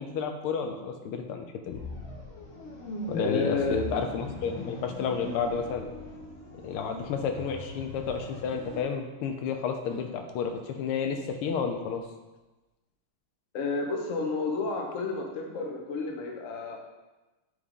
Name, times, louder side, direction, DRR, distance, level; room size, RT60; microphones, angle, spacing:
voice 1, 0.0-1.8 3.1-5.8 6.6-12.0, left 6 dB, 90° left, 5 dB, 1.5 m, -31 dB
sound 1, 1.7-8.8, left 2 dB, 75° left, 1.9 m, -40 dB
voice 2, 3.1-3.8 13.5-16.8, left 3 dB, 55° left, 1 dB, 0.9 m, -30 dB
8.2 x 3.6 x 3.6 m, 1.1 s
omnidirectional pair, 2.4 m